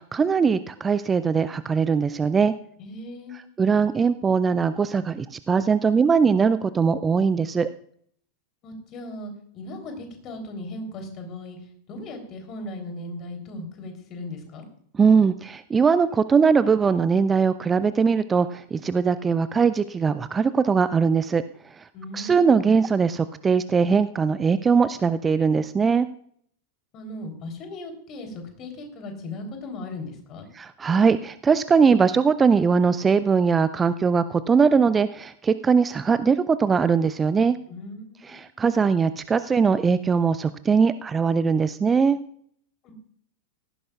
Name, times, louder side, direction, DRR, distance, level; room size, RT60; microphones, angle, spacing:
voice 1, 0.0-2.5 3.6-7.7 14.9-21.4 21.8-21.9 22.1-26.1 30.5-37.6 38.2-42.2, right 5 dB, 15° right, 14 dB, 0.4 m, -21 dB
voice 2, 2.8-3.5 8.6-11.6 11.9-14.6 21.9-22.6 26.9-30.5 37.7-38.5 42.8-42.9, left 1 dB, 35° left, 4 dB, 3.4 m, -37 dB
17.5 x 15.0 x 2.4 m, 0.63 s
figure-of-eight pair, 90°, 0 cm